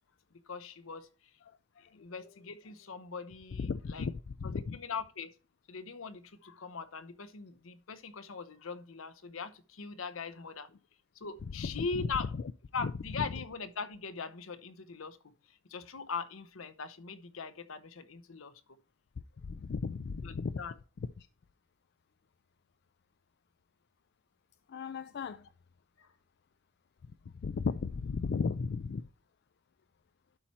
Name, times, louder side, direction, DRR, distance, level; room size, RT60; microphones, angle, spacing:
voice 1, 0.5-1.1 1.9-4.1 4.5-5.3 5.7-10.7 11.1-12.3 12.7-15.2 15.7-18.8 20.2-20.8 26.0-26.1, left 5 dB, 75° left, 0.9 m, -41 dB
voice 2, 3.6-4.8 11.6-12.1 12.8-12.9 19.5-20.6 21.2-21.3 24.7-25.4 27.4-29.0, left 5 dB, 55° left, 0.4 m, -35 dB
11.5 x 4.4 x 4.4 m
head